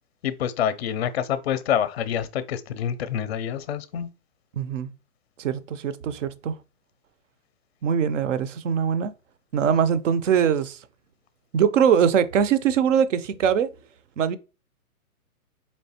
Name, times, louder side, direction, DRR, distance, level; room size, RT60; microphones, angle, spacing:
voice 1, 0.2-4.1, left 9 dB, 45° left, 0.5 m, -27 dB
voice 2, 4.5-4.9 5.4-6.6 7.8-9.1 9.5-10.8 11.5-13.7 14.2-14.4, right 8 dB, 55° right, 0.5 m, -22 dB
4.3 x 3.1 x 2.8 m
hypercardioid pair, 160°, 44 cm